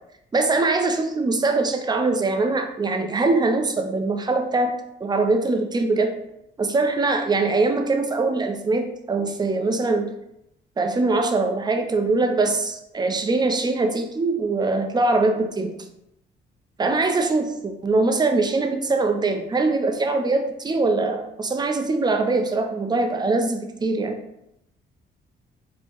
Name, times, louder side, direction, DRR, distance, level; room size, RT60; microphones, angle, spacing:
voice 1, 0.3-4.7 5.0-6.1 6.6-10.1 10.8-15.7 16.8-24.2, right 3 dB, 20° right, 5 dB, 0.4 m, -22 dB
4.4 x 2.0 x 2.9 m, 0.82 s
cardioid pair, 90°, 20 cm